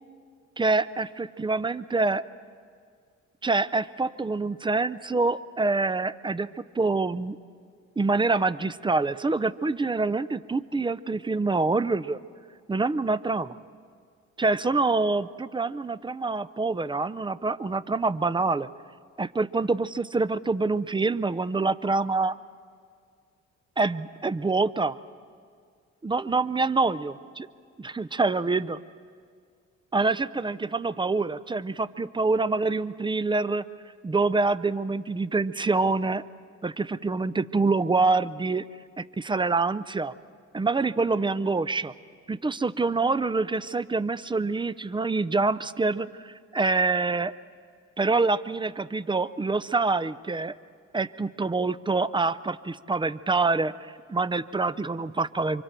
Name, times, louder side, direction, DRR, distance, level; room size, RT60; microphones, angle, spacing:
voice 1, 0.6-2.2 3.4-7.4 8.0-12.2 12.7-13.6 14.4-18.7 19.2-22.4 23.8-25.0 26.0-27.5 27.8-28.8 29.9-33.6 34.0-36.2 36.6-38.7 39.0-40.1 40.5-41.9 42.3-47.3 48.0-50.6 50.9-55.6, right 3 dB, 15° right, 16 dB, 0.5 m, -26 dB
28.5 x 25.0 x 4.5 m, 2.1 s
cardioid pair, 90°, 30 cm